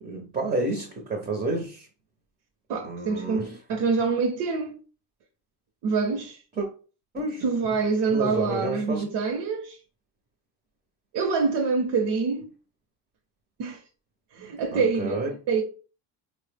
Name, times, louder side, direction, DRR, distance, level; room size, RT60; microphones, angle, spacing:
voice 1, 0.0-1.9 2.8-3.6 6.6-6.7 7.1-7.4 8.1-9.0 14.7-15.3, right 2 dB, 20° right, 0.5 m, -30 dB
voice 2, 2.7-4.7 5.8-6.4 7.4-9.8 11.1-12.5 13.6-13.8 14.3-15.2 15.5-15.6, right 4 dB, 70° right, 0.7 m, -26 dB
4.0 x 2.0 x 3.2 m
cardioid pair, 150°, 42 cm